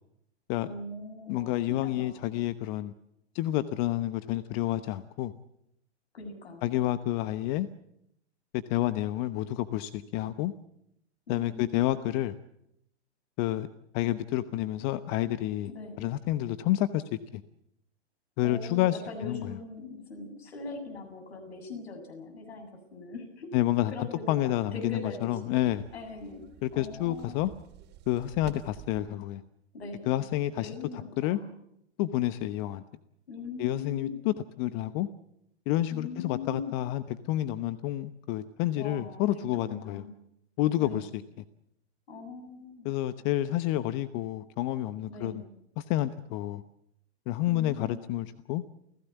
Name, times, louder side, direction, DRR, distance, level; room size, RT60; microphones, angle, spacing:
voice 1, 0.6-2.4 6.1-6.7 11.3-12.2 15.7-16.0 18.4-23.5 23.9-25.6 25.9-26.4 26.7-27.4 29.7-30.2 30.6-31.6 33.3-34.2 35.9-36.7 38.8-40.1 40.8-41.1 42.1-42.9 45.1-45.5 47.5-48.2, left 3 dB, 65° left, 5 dB, 7.8 m, -41 dB
voice 2, 1.3-2.9 3.3-5.3 6.6-7.7 8.7-10.5 11.3-12.3 13.4-13.7 13.9-15.7 16.0-17.4 18.4-19.6 23.5-25.8 26.6-27.5 28.1-29.4 30.1-30.7 31.2-31.4 32.0-32.8 33.6-35.1 35.7-40.0 40.6-41.2 42.8-45.4 45.8-46.6 47.3-48.6, left 14 dB, 35° left, 14 dB, 1.0 m, -29 dB
sound 1, 25.6-29.0, right 9 dB, 30° right, 3.3 m, -50 dB
29.5 x 16.5 x 8.2 m, 0.78 s
figure-of-eight pair, 110°, 34 cm